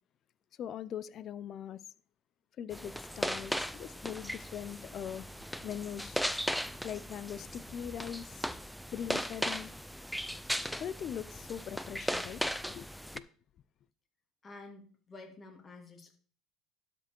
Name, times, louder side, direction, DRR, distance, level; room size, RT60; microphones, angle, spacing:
voice 1, 0.6-1.8 2.6-5.3 5.6-6.2 6.8-8.5 8.9-9.7 10.8-12.9 13.1-13.3, left 9 dB, 50° left, 0.5 m, -41 dB
sound 1, 2.7-13.2, equal, ahead, 0.5 m, -37 dB
voice 2, 14.4-16.1, left 3 dB, 30° left, 2.5 m, -50 dB
12.0 x 5.2 x 4.5 m
supercardioid pair, 85°, 0 cm